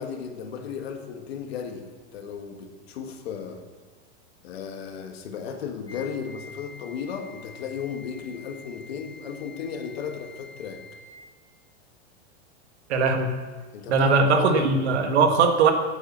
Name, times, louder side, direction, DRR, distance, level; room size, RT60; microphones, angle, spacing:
voice 1, 0.0-3.7 4.4-10.8 13.7-14.7, left 7 dB, 60° left, 5 dB, 1.7 m, -35 dB
Wind instrument woodwind instrument, 5.9-11.2, left 3 dB, 10° left, 0.8 m, -47 dB
voice 2, 12.9-13.3 13.9-15.7, right 4 dB, 70° right, 5 dB, 1.7 m, -20 dB
10.0 x 8.2 x 7.4 m, 1.4 s
supercardioid pair, 180°, 34 cm